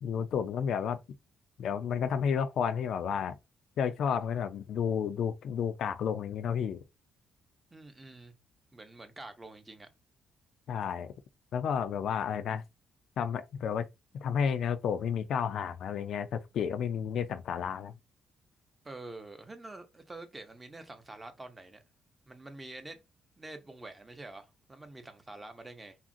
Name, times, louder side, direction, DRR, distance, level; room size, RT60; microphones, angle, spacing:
voice 1, 0.0-1.0 1.6-3.4 3.8-6.8 10.7-11.1 11.5-12.6 13.2-13.9 14.1-18.0, left 7 dB, 70° left, 0.3 m, -31 dB
voice 2, 7.7-8.3 8.7-9.9 18.8-21.8 22.3-23.0 23.4-26.0, right 2 dB, 20° right, 0.7 m, -47 dB
2.8 x 2.4 x 2.6 m
cardioid pair, 90°, 0 cm